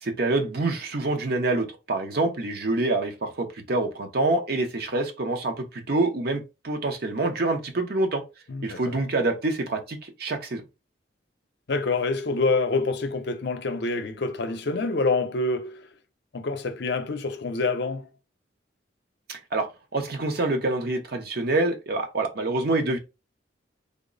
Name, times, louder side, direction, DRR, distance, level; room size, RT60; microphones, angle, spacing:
voice 1, 0.0-8.2 8.6-10.6 19.3-23.0, right 2 dB, 55° right, 0.8 m, -26 dB
voice 2, 8.5-9.0 11.7-15.9 16.3-18.1, left 3 dB, 65° left, 0.6 m, -27 dB
3.5 x 2.0 x 3.8 m
head